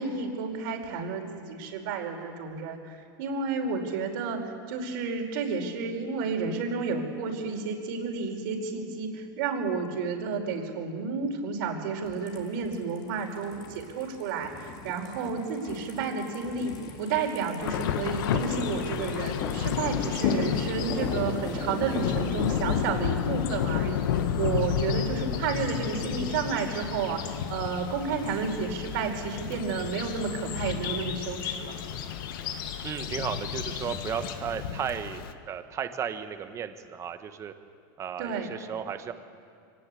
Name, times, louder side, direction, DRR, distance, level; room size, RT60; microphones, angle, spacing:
voice 1, 0.0-16.7 17.0-31.8 38.2-38.5, right 5 dB, 65° right, 2 dB, 4.8 m, -31 dB
sound 1, 12.0-22.9, left 4 dB, 35° left, 2.9 m, -39 dB
Thunder / Rain, 17.6-35.3, left 9 dB, 85° left, 1.3 m, -32 dB
sound 2, 17.7-34.3, left 8 dB, 65° left, 2.2 m, -38 dB
voice 2, 32.8-37.5 38.0-39.1, right 8 dB, 25° right, 9 dB, 1.4 m, -34 dB
25.0 x 18.5 x 8.4 m, 2.3 s
supercardioid pair, 145°, 12 cm